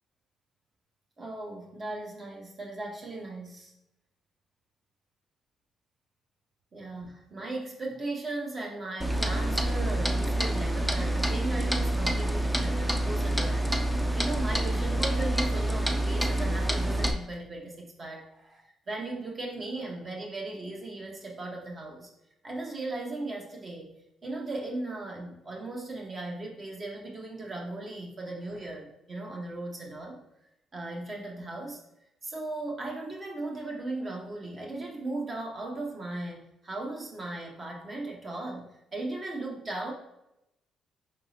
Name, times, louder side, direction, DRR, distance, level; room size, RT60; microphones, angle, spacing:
voice 1, 1.2-3.7 6.7-22.1 22.4-23.9 24.2-30.2 30.7-31.8 32.2-39.9, right 2 dB, 40° right, 0 dB, 1.3 m, -37 dB
Clock, 9.0-17.1, right 1 dB, 5° right, 0.5 m, -27 dB
4.9 x 3.7 x 2.8 m, 0.86 s
cardioid pair, 90°, 0 cm